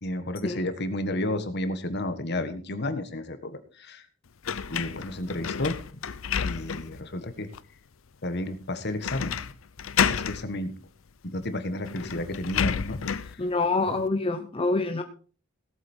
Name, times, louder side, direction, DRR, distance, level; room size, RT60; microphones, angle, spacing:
voice 1, 0.0-4.0 4.7-6.0 6.4-7.5 8.2-9.5 10.1-10.7 11.2-13.4, left 1 dB, 55° left, 10 dB, 1.5 m, -32 dB
sound 1, 4.4-7.0 7.5-7.6 9.0-9.5 9.8-10.4 11.4-11.5 11.8-13.3, left 7 dB, 85° left, 0.7 m, -29 dB
voice 2, 13.4-15.0, left 3 dB, 30° left, 6 dB, 0.9 m, -26 dB
17.5 x 8.2 x 4.4 m, 0.39 s
head